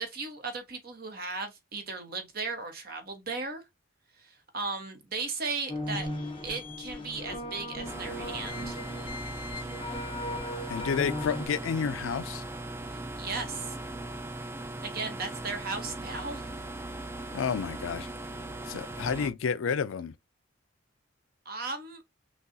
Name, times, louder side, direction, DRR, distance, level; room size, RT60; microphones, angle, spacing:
voice 1, 0.0-3.6 4.2-6.1 6.4-8.8 12.9-13.7 14.8-16.5 21.4-22.0, right 4 dB, 45° right, 1.0 m, -36 dB
sound 1, 5.7-11.5, left 1 dB, 25° left, 0.7 m, -37 dB
sound 2, 7.8-19.3, right 2 dB, 10° right, 0.3 m, -39 dB
voice 2, 10.7-12.4 17.3-18.1 18.7-20.1, left 6 dB, 75° left, 0.4 m, -30 dB
6.3 x 2.3 x 2.6 m
head